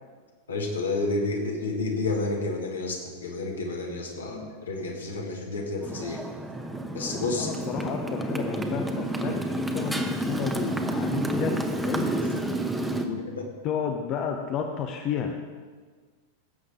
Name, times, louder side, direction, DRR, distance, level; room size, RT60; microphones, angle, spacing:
voice 1, 0.5-6.2 6.9-7.5 13.4-13.5, left 3 dB, 70° left, 0 dB, 2.0 m, -30 dB
Motorcycle, 5.8-13.1, right 1 dB, 5° right, 0.9 m, -29 dB
voice 2, 7.4-12.1 13.0-13.2 13.6-15.4, left 7 dB, 35° left, 4 dB, 0.8 m, -32 dB
17.0 x 8.0 x 3.6 m, 1.5 s
figure-of-eight pair, 90°, 0 cm